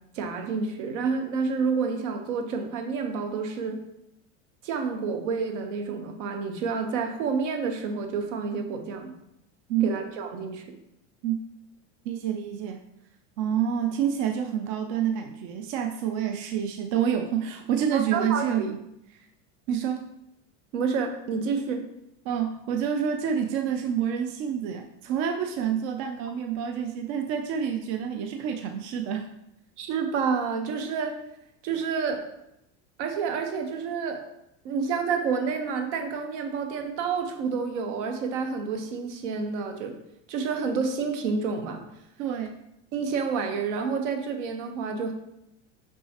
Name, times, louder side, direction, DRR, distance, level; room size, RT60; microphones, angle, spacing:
voice 1, 0.1-3.8 4.6-9.1 9.8-10.8 17.9-18.7 20.7-21.8 29.8-31.2 31.6-32.3 33.0-34.3 34.6-40.0 40.3-41.8 42.9-45.1, right 5 dB, 80° right, 5 dB, 1.1 m, -29 dB
voice 2, 12.1-12.8 13.4-18.8 19.7-20.0 22.3-29.3 42.2-42.6, right 8 dB, 50° right, 5 dB, 0.4 m, -28 dB
6.1 x 5.5 x 2.9 m, 0.83 s
supercardioid pair, 150°, 36 cm